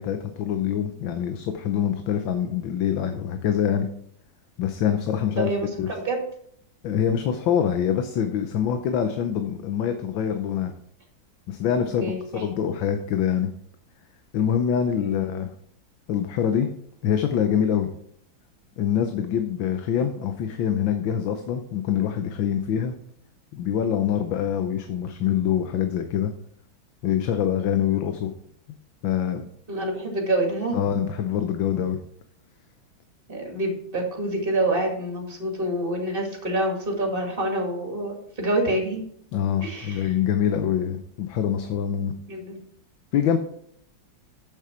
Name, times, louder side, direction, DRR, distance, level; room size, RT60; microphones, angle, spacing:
voice 1, 0.0-3.9 4.6-5.5 5.8-5.9 6.8-10.7 11.5-13.5 14.3-15.5 16.1-16.7 17.0-17.9 18.8-22.9 23.5-26.3 27.0-28.3 29.0-29.4 30.7-32.0 39.3-42.1 43.1-43.4, left 9 dB, 80° left, 7 dB, 1.5 m, -25 dB
voice 2, 5.4-6.2 12.0-12.7 15.0-15.5 29.7-30.8 33.3-39.1 39.6-40.1 42.3-42.6, right 1 dB, 30° right, 0 dB, 2.5 m, -27 dB
8.5 x 7.2 x 4.4 m, 0.67 s
omnidirectional pair, 2.1 m